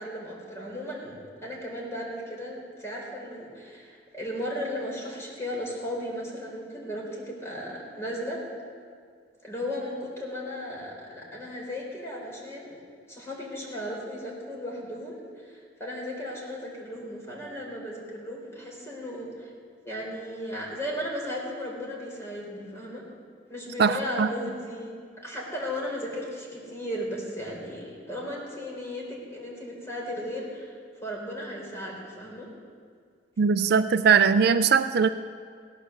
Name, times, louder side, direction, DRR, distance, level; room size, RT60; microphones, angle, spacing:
voice 1, 0.0-8.4 9.4-12.7 13.1-19.5 19.8-23.0 23.5-24.9 25.2-30.7 31.0-32.5, equal, 15° left, -3 dB, 4.0 m, -35 dB
voice 2, 33.4-35.1, right 6 dB, 60° right, 11 dB, 0.4 m, -20 dB
17.0 x 9.8 x 7.1 m, 2.1 s
head